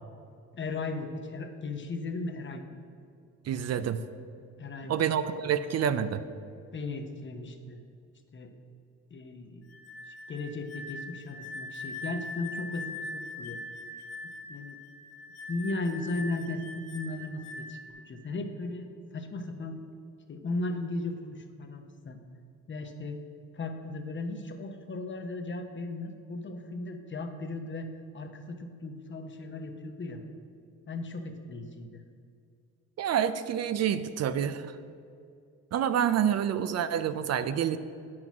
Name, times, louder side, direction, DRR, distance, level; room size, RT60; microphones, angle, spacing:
voice 1, 0.5-2.8 4.6-5.0 6.7-7.8 8.3-8.5 9.1-9.7 10.1-13.6 14.5-14.8 15.5-17.8 18.0-19.8 20.3-22.2 22.7-23.2 23.5-27.9 28.1-30.2 30.9-32.0, left 2 dB, 40° left, 6 dB, 1.0 m, -36 dB
voice 2, 3.5-4.0 4.9-6.2 33.0-34.7 35.7-37.8, right 9 dB, 55° right, 12 dB, 0.5 m, -28 dB
sound 1, 9.7-17.9, left 2 dB, 60° left, 1.7 m, -42 dB
8.9 x 6.2 x 6.0 m, 2.4 s
cardioid pair, 90°, 30 cm